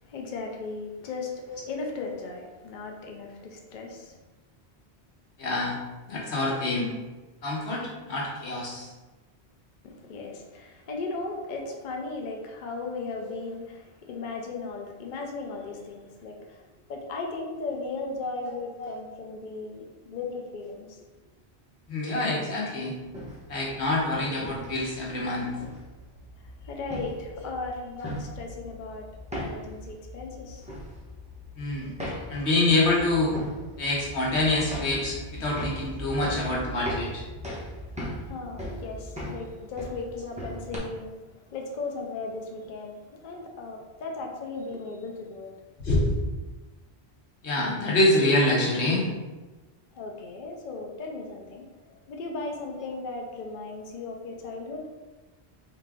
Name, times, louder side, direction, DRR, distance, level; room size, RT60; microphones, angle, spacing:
voice 1, 0.0-4.2 9.8-21.0 26.4-29.1 29.4-30.7 38.2-45.6 49.9-54.9, left 3 dB, 55° left, 1 dB, 0.7 m, -37 dB
voice 2, 5.4-5.8 6.1-6.9 7.4-8.9 13.2-13.3 18.4-18.5 18.8-19.0 21.9-23.0 23.5-25.5 28.0-28.1 31.6-31.9 32.3-33.3 33.8-37.2 45.8-46.1 47.4-49.1, left 2 dB, 80° left, -3 dB, 1.3 m, -26 dB
sound 1, 23.1-40.8, equal, 5° right, 0.9 m, -39 dB
3.7 x 3.2 x 3.6 m, 1.2 s
omnidirectional pair, 1.1 m